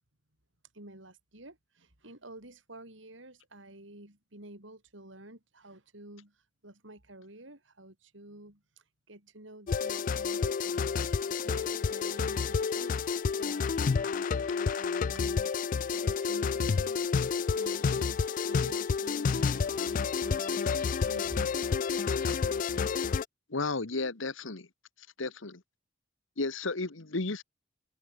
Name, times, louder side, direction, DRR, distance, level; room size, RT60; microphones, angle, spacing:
voice 1, 0.7-15.5 15.9-21.6, right 1 dB, 70° right, 5.1 m, -50 dB
sound 1, 9.7-23.2, left 5 dB, 45° left, 0.3 m, -30 dB
voice 2, 23.5-24.7 25.2-25.6 26.4-27.4, left 3 dB, 75° left, 1.5 m, -33 dB
open air
head